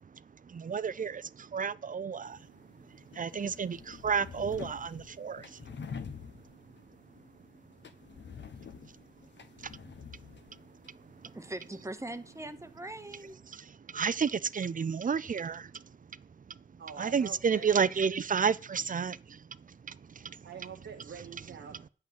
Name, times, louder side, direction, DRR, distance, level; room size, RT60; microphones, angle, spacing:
voice 1, 0.5-2.4 3.1-5.6 11.2-11.3 13.5-15.8 17.0-19.4 19.9-20.4, right 6 dB, 45° right, 0.5 m, -31 dB
sound 1, 2.3-13.3, left 6 dB, 70° left, 1.0 m, -48 dB
voice 2, 11.3-13.4, right 1 dB, 15° right, 0.8 m, -41 dB
voice 3, 16.8-17.9 20.4-21.9, right 6 dB, 90° right, 1.0 m, -45 dB
8.8 x 6.1 x 7.5 m
cardioid pair, 60°, 19 cm